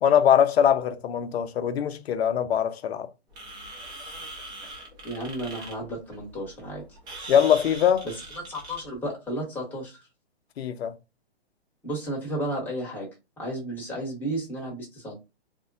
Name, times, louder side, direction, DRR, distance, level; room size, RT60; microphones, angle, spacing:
voice 1, 0.0-3.1 7.3-8.1 10.6-11.0, left 9 dB, 70° left, 0.6 m, -22 dB
sound 1, 3.3-8.9, right 2 dB, 10° right, 0.6 m, -41 dB
voice 2, 5.0-7.0 8.0-8.1 8.5-10.0 11.8-15.2, right 1 dB, 5° left, 1.0 m, -33 dB
3.3 x 2.1 x 2.5 m
hypercardioid pair, 145°, 33 cm